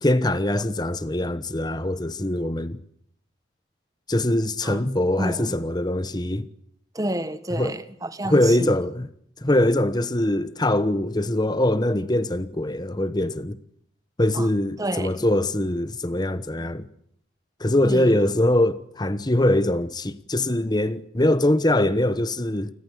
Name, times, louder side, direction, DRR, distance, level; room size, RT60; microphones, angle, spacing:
voice 1, 0.0-2.8 4.1-6.5 7.6-7.7 8.2-9.1 9.4-13.6 14.2-16.9 17.6-22.7, left 1 dB, 20° left, 1.1 m, -22 dB
voice 2, 5.2-5.5 6.9-8.8 14.3-14.5 14.8-15.2 17.8-18.3, right 1 dB, 20° right, 1.4 m, -30 dB
29.5 x 21.0 x 8.4 m
head